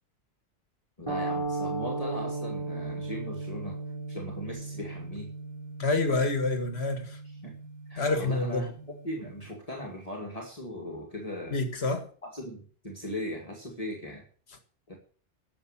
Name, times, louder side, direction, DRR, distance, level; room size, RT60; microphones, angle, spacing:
voice 1, 1.0-3.8 4.1-5.3 7.4-7.6 7.9-8.7 9.0-11.6 12.2-14.2 14.9-15.0, left 1 dB, 30° left, 2.5 m, -38 dB
sound 1, 1.1-9.4, right 3 dB, 25° right, 4.9 m, -37 dB
voice 2, 5.8-7.2 8.0-8.7 11.5-12.1, left 3 dB, 60° left, 2.2 m, -27 dB
12.0 x 7.2 x 8.8 m
omnidirectional pair, 1.2 m